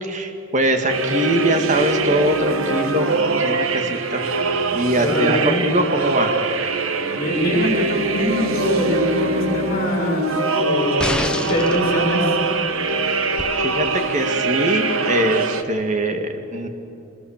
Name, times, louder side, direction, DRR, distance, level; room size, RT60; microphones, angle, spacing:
voice 1, 0.0-4.2 4.7-6.4 13.0-13.3 13.6-16.7, right 1 dB, 35° right, 6 dB, 1.8 m, -22 dB
sound 1, 0.9-15.6, right 3 dB, 75° right, 1.3 m, -23 dB
voice 2, 5.0-5.5 7.1-12.2, equal, 45° left, -3 dB, 6.7 m, -23 dB
sound 2, 11.0-11.8 13.4-13.5, left 1 dB, 5° left, 1.0 m, -25 dB
25.5 x 21.5 x 7.3 m, 2.7 s
head